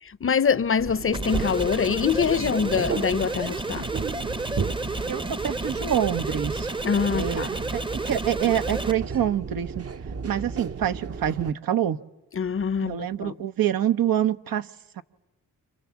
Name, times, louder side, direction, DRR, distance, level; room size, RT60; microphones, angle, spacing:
voice 1, 0.0-3.9 6.8-7.5 12.3-13.3, left 6 dB, 35° left, 0.8 m, -24 dB
sound 1, 0.8-11.5, right 5 dB, 40° right, 1.1 m, -34 dB
sound 2, 1.1-8.9, right 2 dB, 15° right, 0.9 m, -31 dB
voice 2, 5.1-6.7 7.1-9.9 10.2-12.0 12.8-14.7 15.0-15.1, right 10 dB, 65° right, 1.2 m, -26 dB
28.5 x 27.5 x 7.2 m
supercardioid pair, 55°, 37 cm